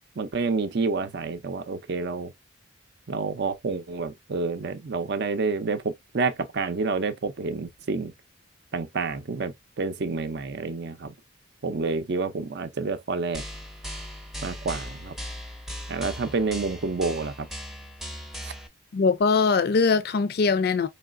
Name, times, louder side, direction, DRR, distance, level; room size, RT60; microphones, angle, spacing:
voice 1, 0.2-2.3 3.1-8.1 8.7-11.1 11.6-13.4 14.4-15.1 15.9-17.5 18.4-18.5, right 4 dB, 55° right, 0.5 m, -29 dB
sound 1, 13.3-18.7, equal, ahead, 0.5 m, -38 dB
voice 2, 18.9-20.9, left 4 dB, 50° left, 0.4 m, -21 dB
4.7 x 3.1 x 2.4 m
head